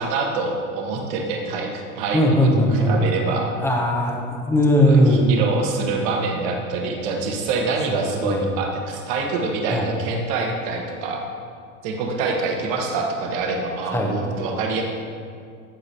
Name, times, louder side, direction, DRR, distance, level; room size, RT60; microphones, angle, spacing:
voice 1, 0.0-3.5 4.8-11.2 11.8-14.8, right 3 dB, 50° right, 1 dB, 1.3 m, -26 dB
voice 2, 2.1-2.9 3.6-5.3 7.9-8.5 9.7-9.9 13.9-14.1, equal, 5° left, 0 dB, 0.7 m, -19 dB
14.5 x 4.9 x 2.8 m, 2.2 s
supercardioid pair, 145°, 40 cm